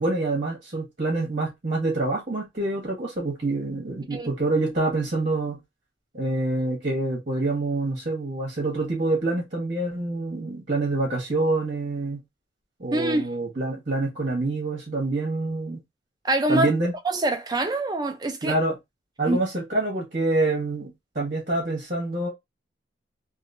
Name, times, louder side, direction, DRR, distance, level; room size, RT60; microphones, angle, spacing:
voice 1, 0.0-5.6 6.1-12.2 12.8-15.8 16.5-16.9 18.4-18.7 19.2-22.3, right 2 dB, 40° right, 1.3 m, -26 dB
voice 2, 12.9-13.2 16.2-16.7 17.0-18.6 19.3-19.4, right 2 dB, 20° right, 0.5 m, -24 dB
3.0 x 2.7 x 2.6 m
head